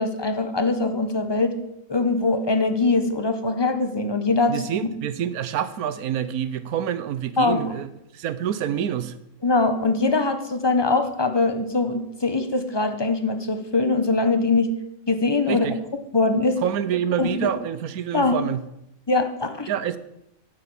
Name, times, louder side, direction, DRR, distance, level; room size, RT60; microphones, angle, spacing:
voice 1, 0.0-1.6 1.9-4.7 7.4-7.7 9.4-14.7 15.1-15.7 16.1-16.6 17.2-17.5 18.1-18.4 19.1-19.7, left 3 dB, 20° left, 8 dB, 0.8 m, -22 dB
voice 2, 4.5-9.1 15.5-15.8 16.6-18.6 19.7-20.0, right 9 dB, 80° right, 14 dB, 1.2 m, -27 dB
10.0 x 7.9 x 7.3 m, 0.85 s
omnidirectional pair, 1.6 m